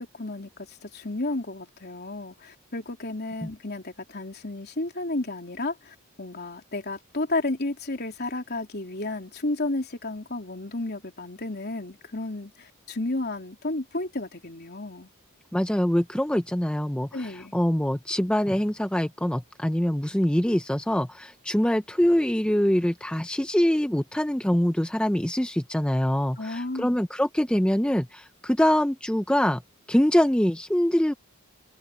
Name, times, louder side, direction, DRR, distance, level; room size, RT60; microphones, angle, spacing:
voice 1, 0.0-15.1 17.1-17.5 26.4-27.0, left 2 dB, 50° left, 3.5 m, -32 dB
voice 2, 15.5-29.6 29.9-31.1, equal, 5° left, 0.6 m, -24 dB
head